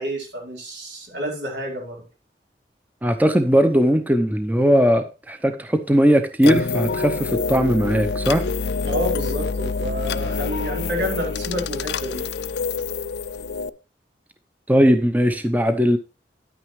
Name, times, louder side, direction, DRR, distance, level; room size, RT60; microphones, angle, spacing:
voice 1, 0.0-2.0 8.9-12.2, equal, 85° right, 4.2 m, -29 dB
voice 2, 3.0-8.4 14.7-16.0, equal, 10° right, 0.7 m, -19 dB
sound 1, 6.4-13.7, left 4 dB, 70° left, 0.5 m, -26 dB
10.0 x 9.1 x 3.1 m
head